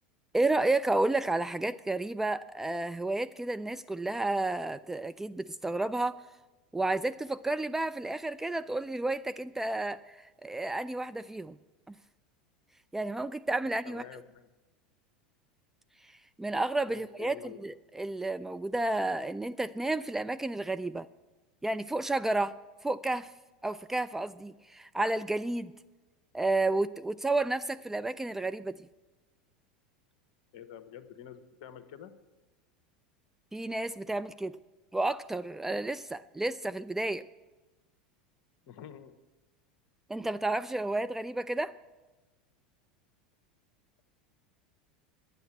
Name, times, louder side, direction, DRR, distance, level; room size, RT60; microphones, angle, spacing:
voice 1, 0.3-6.2 6.7-11.6 11.9-12.0 12.9-14.0 16.0-21.1 21.6-22.6 22.8-23.3 23.6-25.7 26.3-28.9 33.5-34.6 34.9-37.2 40.1-41.7, right 2 dB, 10° right, 12 dB, 0.3 m, -31 dB
voice 2, 13.6-14.5 16.9-17.6 30.5-32.2 38.7-39.1, left 9 dB, 55° left, 10 dB, 1.1 m, -48 dB
10.5 x 9.0 x 8.4 m, 1.2 s
figure-of-eight pair, 80°, 5 cm